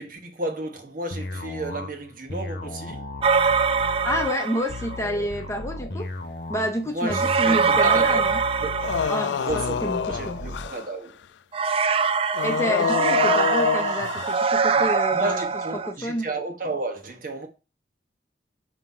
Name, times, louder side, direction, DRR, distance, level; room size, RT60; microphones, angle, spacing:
voice 1, 0.0-3.0 6.8-8.3 8.6-8.8 9.4-11.2 14.8-17.5, right 2 dB, 50° right, 1.3 m, -32 dB
sound 1, 1.1-10.7, left 2 dB, 60° left, 1.0 m, -35 dB
sound 2, 3.2-5.0 7.1-9.6 11.5-15.9, right 5 dB, 35° right, 0.4 m, -23 dB
voice 2, 3.9-6.1 6.5-8.4 9.1-10.4 12.4-15.4 15.7-16.3, equal, 15° left, 0.8 m, -29 dB
sound 3, 8.8-10.9 12.3-14.5, left 7 dB, 85° left, 0.3 m, -26 dB
5.8 x 3.0 x 5.5 m
head